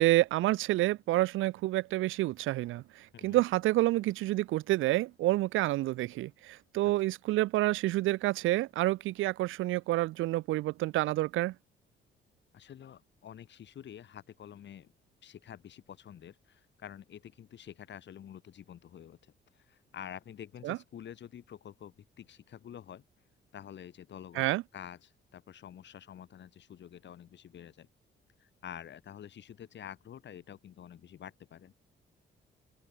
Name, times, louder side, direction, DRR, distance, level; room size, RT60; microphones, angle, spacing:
voice 1, 0.0-11.5 20.6-20.8 24.4-24.6, right 17 dB, 85° right, 0.6 m, -28 dB
voice 2, 12.5-14.9 15.2-23.0 23.5-27.9 28.4-31.7, left 9 dB, 65° left, 7.9 m, -48 dB
open air
cardioid pair, 90°, 20 cm